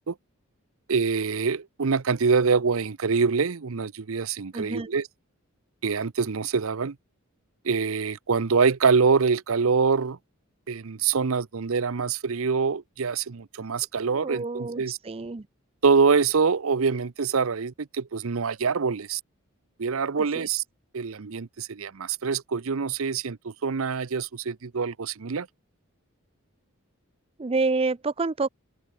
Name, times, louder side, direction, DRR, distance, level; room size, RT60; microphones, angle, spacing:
voice 1, 0.9-5.1 5.8-7.0 7.6-10.2 10.7-15.0 15.8-19.2 19.8-20.6 20.9-25.5, right 5 dB, 75° right, 0.7 m, -25 dB
voice 2, 4.5-5.0 14.1-15.5 20.1-20.5 27.4-28.5, right 3 dB, 25° right, 0.5 m, -28 dB
open air
head